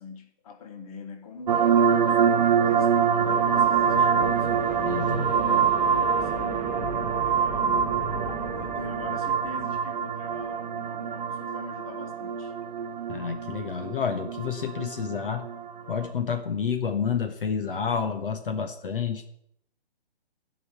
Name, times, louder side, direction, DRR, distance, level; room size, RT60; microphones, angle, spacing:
voice 1, 0.0-1.6 1.9-4.5 5.1-6.7 7.1-7.9 8.4-12.5, left 5 dB, 35° left, 6 dB, 1.5 m, -44 dB
sound 1, 1.5-16.1, right 7 dB, 45° right, 0.6 m, -25 dB
sound 2, 3.2-10.7, equal, 5° right, 2.7 m, -38 dB
voice 2, 4.8-5.3 13.1-15.4 15.9-19.3, left 7 dB, 55° left, 6 dB, 1.3 m, -29 dB
12.5 x 5.6 x 8.3 m, 0.73 s
hypercardioid pair, 145°, 32 cm